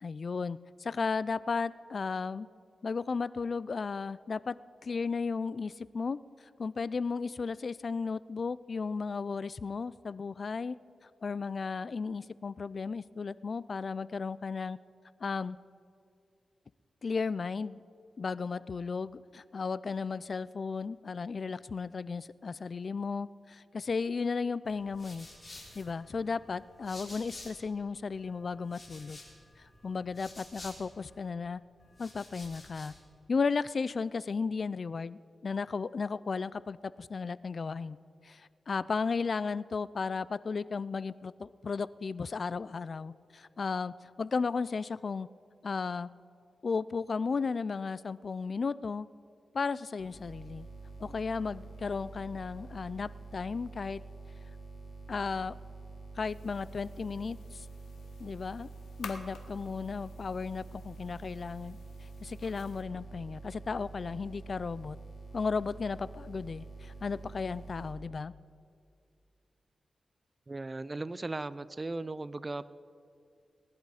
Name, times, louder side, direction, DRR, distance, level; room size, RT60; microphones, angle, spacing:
voice 1, 0.0-2.5 2.8-4.5 4.8-6.2 6.6-10.8 11.2-14.8 15.2-15.6 17.0-17.8 18.2-25.3 25.8-29.2 29.8-31.6 32.0-32.9 33.3-38.0 38.2-45.3 45.6-46.1 46.6-49.1 49.5-50.7 51.0-54.0 55.1-55.5 56.2-57.7 58.2-58.7 59.0-65.0 65.3-68.3, left 4 dB, 55° left, 19 dB, 0.4 m, -34 dB
sound 1, 24.7-27.8 28.1-31.3 31.8-33.0, left 2 dB, 35° left, 3.7 m, -51 dB
sound 2, 50.0-67.9, right 3 dB, 70° left, 3.5 m, -47 dB
sound 3, 56.2-62.8, left 5 dB, 90° left, 1.1 m, -53 dB
voice 2, 70.5-72.7, right 2 dB, 30° right, 16 dB, 0.5 m, -37 dB
19.5 x 10.5 x 4.9 m, 2.4 s
cardioid pair, 70°, 0 cm